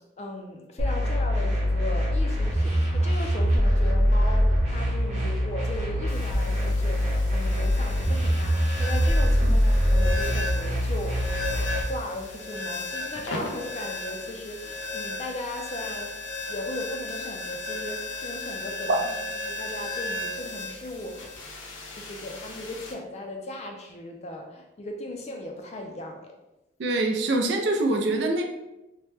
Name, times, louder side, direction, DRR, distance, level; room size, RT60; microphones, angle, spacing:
voice 1, 0.2-19.0 19.4-21.3 21.9-26.3, left 1 dB, 35° left, 3 dB, 0.4 m, -37 dB
sound 1, 0.8-11.8, equal, 35° right, 0.9 m, -23 dB
sound 2, 6.1-22.9, left 2 dB, 90° left, 0.6 m, -35 dB
voice 2, 26.8-28.4, right 2 dB, 65° right, 3 dB, 0.4 m, -24 dB
2.9 x 2.1 x 3.2 m, 0.97 s
head